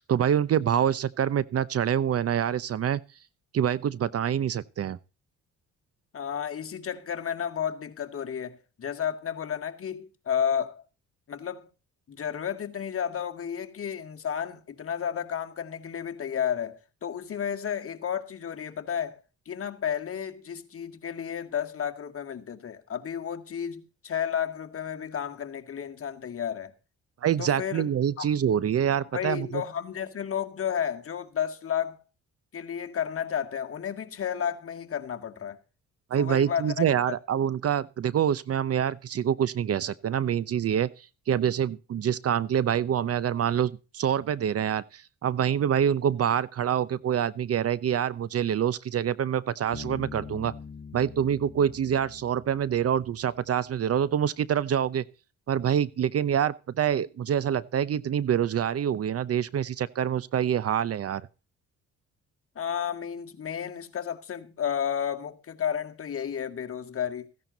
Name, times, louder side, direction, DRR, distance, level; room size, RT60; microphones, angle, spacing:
voice 1, 0.0-3.0 3.5-5.0 27.2-29.6 36.1-50.5 50.9-55.0 55.5-61.2, right 9 dB, 50° right, 0.8 m, -26 dB
voice 2, 6.1-10.8 11.3-11.7 12.1-19.2 19.5-26.7 27.4-27.9 28.2-28.3 29.1-32.0 32.5-35.6 36.1-36.9 62.6-67.3, left 8 dB, 45° left, 2.0 m, -32 dB
Bass guitar, 49.7-53.4, left 5 dB, 30° left, 2.9 m, -44 dB
15.5 x 10.5 x 4.0 m
cardioid pair, 90°, 30 cm